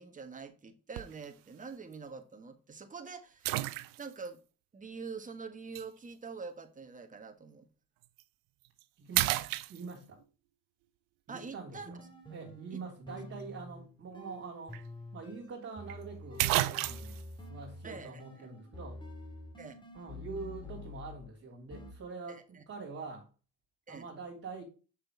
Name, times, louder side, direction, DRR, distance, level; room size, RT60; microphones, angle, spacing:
voice 1, 0.0-3.5 4.0-4.4 4.7-7.7 11.3-11.9 12.7-12.8 17.8-18.5 19.6-19.8 22.3-22.6 23.9-24.1, right 5 dB, 25° right, 1.5 m, -45 dB
sound 1, 1.0-1.3 1.9-2.0 3.4-4.3 5.7-5.9 8.0-8.2 8.6-8.8 9.1-10.2 14.3-14.4 14.7-14.8 15.9-16.0 16.4-17.2, right 18 dB, 85° right, 0.6 m, -31 dB
voice 2, 9.0-9.4 9.7-10.2 11.3-12.0 12.3-14.8 15.1-17.2 17.5-19.0 19.9-23.3 23.9-24.6, right 4 dB, 45° right, 3.1 m, -44 dB
sound 2, 11.8-21.3 21.7-21.9, left 2 dB, 15° left, 2.0 m, -48 dB
6.6 x 6.2 x 3.4 m
cardioid pair, 105°, 34 cm